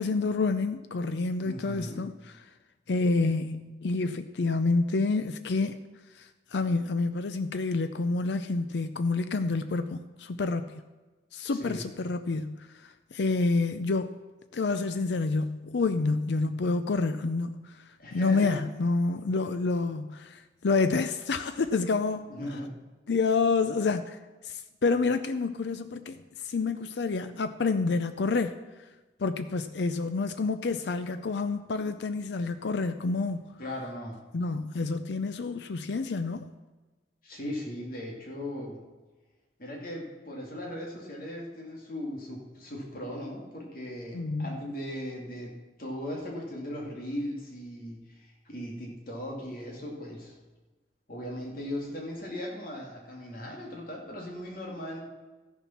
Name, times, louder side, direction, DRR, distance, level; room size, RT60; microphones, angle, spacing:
voice 1, 0.0-2.1 2.9-5.8 6.1-10.8 11.3-14.2 14.5-22.6 23.1-28.5 29.2-33.5 34.3-36.5 44.1-44.5, left 3 dB, 80° left, 10 dB, 0.5 m, -28 dB
voice 2, 1.4-2.0 11.4-11.9 18.0-18.6 22.3-22.7 33.6-34.2 37.2-38.8 39.6-45.5 45.8-50.3 51.1-55.0, left 1 dB, 55° left, -2 dB, 2.6 m, -38 dB
14.0 x 7.1 x 5.8 m, 1.2 s
head